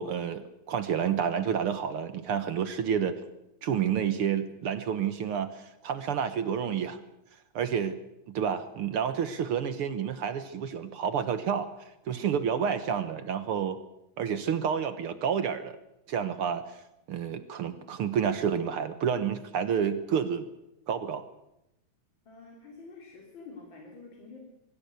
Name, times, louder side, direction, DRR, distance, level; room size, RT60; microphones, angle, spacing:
voice 1, 0.0-3.2 3.6-7.0 7.6-8.0 8.3-11.7 12.1-13.8 14.2-15.8 16.1-16.8 17.1-20.5 20.9-21.2, right 7 dB, 60° right, 11 dB, 1.6 m, -29 dB
voice 2, 22.3-24.4, left 4 dB, 40° left, 0 dB, 4.0 m, -48 dB
23.0 x 14.5 x 8.3 m, 0.87 s
omnidirectional pair, 3.5 m